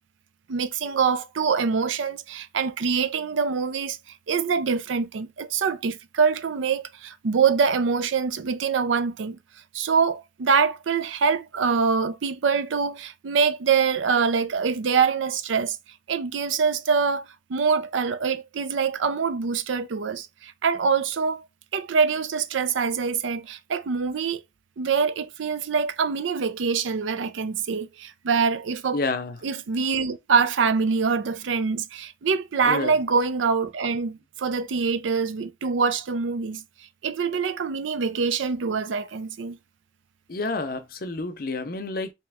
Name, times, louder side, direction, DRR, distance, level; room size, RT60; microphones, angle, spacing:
voice 1, 0.5-9.4 9.7-15.8 16.1-21.5 21.7-24.4 24.8-29.0 29.4-36.6 37.0-39.6, right 5 dB, 80° right, 0.5 m, -24 dB
voice 2, 28.9-29.4 32.6-32.9 40.3-42.1, left 3 dB, 50° left, 0.6 m, -29 dB
3.3 x 2.9 x 3.4 m
head